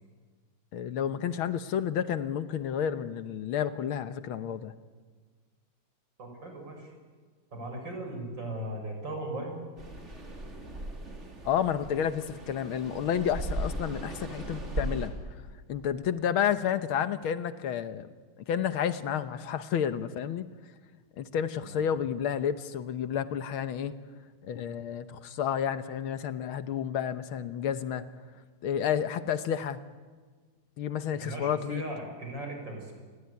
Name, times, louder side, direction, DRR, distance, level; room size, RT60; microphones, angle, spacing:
voice 1, 0.7-4.7 11.5-15.1 15.7-18.1 18.5-20.5 21.2-24.0 24.4-28.1 28.6-29.8 30.8-31.8, left 9 dB, 75° left, 11 dB, 1.8 m, -30 dB
voice 2, 6.2-6.9 7.5-9.6 21.6-21.8 31.2-32.9, right 1 dB, 55° right, 3 dB, 6.9 m, -38 dB
sound 1, 9.8-15.1, right 1 dB, 30° right, 3.8 m, -37 dB
29.5 x 20.0 x 9.7 m, 1.5 s
omnidirectional pair, 2.3 m